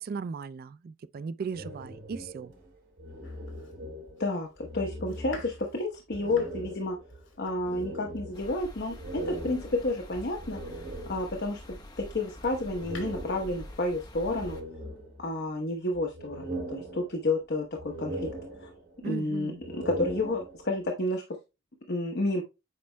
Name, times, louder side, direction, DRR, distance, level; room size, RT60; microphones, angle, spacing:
voice 1, 0.0-2.5 19.0-19.6, right 5 dB, 50° right, 0.3 m, -37 dB
sound 1, 1.5-4.3 4.6-5.7 6.1-11.5 12.5-13.8 14.2-15.5 15.9-17.4 17.7-19.1 19.5-20.8, right 1 dB, 65° right, 3.6 m, -41 dB
Domestic sounds home sounds, 3.2-11.4 12.0-13.1, left 2 dB, 70° left, 2.3 m, -51 dB
voice 2, 4.2-7.0 7.4-10.6 11.1-14.6 15.2-18.3 18.6-18.7 19.0-21.2 21.9-22.4, left 2 dB, 55° left, 1.0 m, -30 dB
sound 2, 8.3-14.6, left 1 dB, 20° left, 1.1 m, -46 dB
8.5 x 5.2 x 2.2 m
head